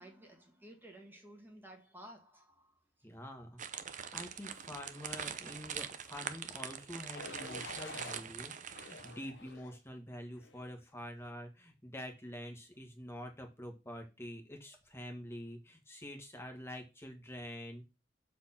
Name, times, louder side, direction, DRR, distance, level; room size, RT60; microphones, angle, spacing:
voice 1, 0.0-2.7, right 1 dB, 10° right, 1.9 m, -54 dB
voice 2, 3.0-3.6 3.9-17.8, equal, 15° left, 1.7 m, -47 dB
sound 1, 3.6-9.3, right 8 dB, 45° right, 0.7 m, -43 dB
sound 2, 7.1-8.2 8.7-9.8 10.4-10.7, left 3 dB, 90° left, 1.0 m, -48 dB
7.3 x 4.3 x 5.8 m
head